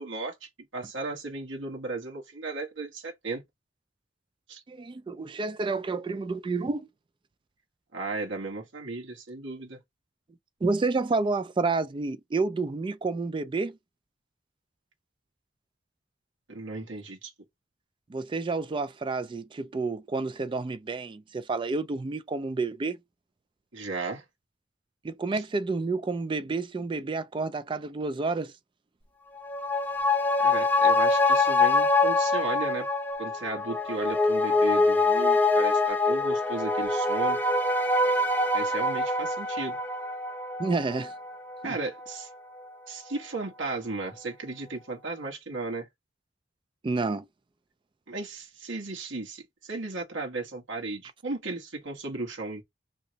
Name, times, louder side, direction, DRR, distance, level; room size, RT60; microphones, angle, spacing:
voice 1, 0.0-3.4 4.5-4.6 7.9-9.8 16.5-17.3 23.7-24.2 25.3-25.4 30.4-32.9 33.2-37.4 38.5-39.8 41.6-42.3 42.9-45.9 48.1-52.6, right 3 dB, 85° right, 1.3 m, -35 dB
voice 2, 4.7-6.9 10.6-13.8 18.1-23.0 25.0-28.5 40.6-41.1 41.6-41.8 46.8-47.3, right 3 dB, 25° right, 0.3 m, -29 dB
sound 1, 29.4-42.2 42.6-42.7, left 2 dB, 10° left, 0.7 m, -25 dB
3.1 x 2.8 x 2.8 m
head